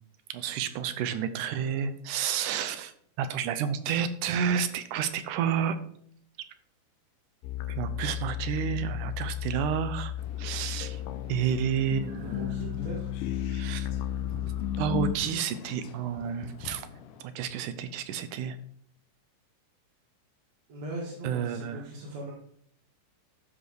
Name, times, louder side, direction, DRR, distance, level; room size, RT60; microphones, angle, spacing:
voice 1, 0.3-2.9 3.2-5.8 7.7-10.1 10.4-11.0 11.3-12.6 13.5-13.9 14.3-14.5 14.8-16.9 17.2-18.6 21.2-21.8, right 8 dB, 75° right, 11 dB, 2.1 m, -30 dB
sound 1, 7.4-15.2, left 11 dB, 90° left, 2.4 m, -33 dB
sound 2, 10.2-17.2, left 8 dB, 75° left, 2.4 m, -46 dB
voice 2, 12.2-13.1 20.7-22.3, right 1 dB, 55° right, -4 dB, 2.8 m, -39 dB
12.5 x 5.3 x 4.8 m, 0.64 s
omnidirectional pair, 3.9 m